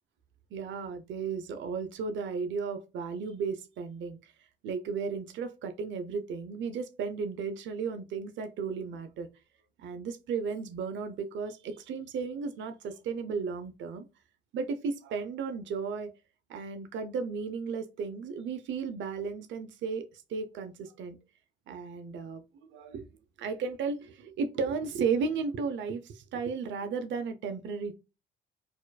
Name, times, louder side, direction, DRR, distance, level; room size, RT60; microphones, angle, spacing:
voice 1, 0.5-9.3 9.8-14.1 14.5-16.1 16.5-21.2 21.7-23.1 23.4-27.9, right 5 dB, 70° right, 0.5 m, -34 dB
4.3 x 2.4 x 2.2 m
cardioid pair, 90°, 20 cm